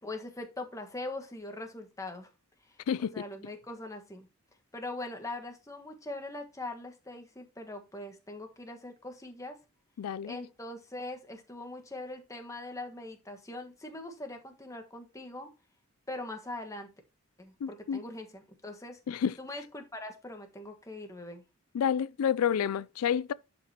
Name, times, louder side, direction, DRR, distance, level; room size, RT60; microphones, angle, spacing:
voice 1, 0.0-2.3 2.6-4.3 4.7-9.6 10.3-15.5 16.1-16.9 17.4-19.0 19.4-21.4, left 2 dB, 15° left, 1.4 m, -42 dB
voice 2, 2.9-3.2 10.0-10.4 17.6-18.0 19.1-19.3 21.7-23.3, left 8 dB, 85° left, 0.4 m, -29 dB
10.5 x 5.3 x 2.9 m
head